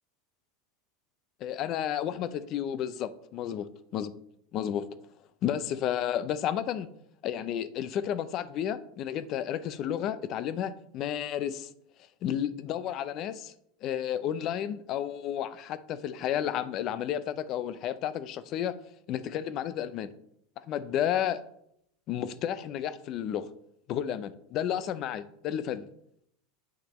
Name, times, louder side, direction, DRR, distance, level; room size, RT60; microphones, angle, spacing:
voice 1, 1.4-3.7 3.9-4.1 4.5-4.9 5.4-6.9 7.2-11.7 12.2-13.5 13.8-18.7 19.1-20.1 20.7-21.4 22.1-23.5 23.9-25.9, left 10 dB, 40° left, 15 dB, 0.4 m, -32 dB
8.1 x 6.0 x 3.0 m, 0.74 s
supercardioid pair, 140°, 0 cm